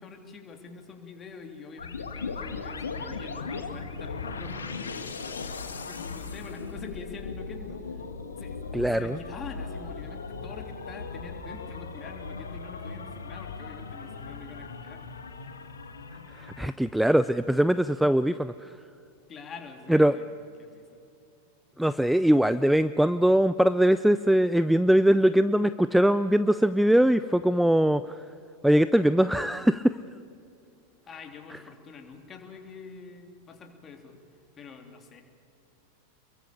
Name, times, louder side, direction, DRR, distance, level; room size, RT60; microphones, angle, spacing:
voice 1, 0.0-5.3 5.8-8.0 8.4-8.6 8.9-15.1 19.3-21.0 31.1-34.2 34.6-35.2, left 4 dB, 25° left, 4 dB, 3.4 m, -45 dB
sound 1, 1.8-16.7, left 4 dB, 70° left, 1.9 m, -38 dB
voice 2, 8.7-9.2 16.4-18.7 19.9-20.1 21.8-28.0 28.6-30.0, right 1 dB, ahead, 14 dB, 0.5 m, -22 dB
28.5 x 22.5 x 7.1 m, 2.6 s
figure-of-eight pair, 90°, 0 cm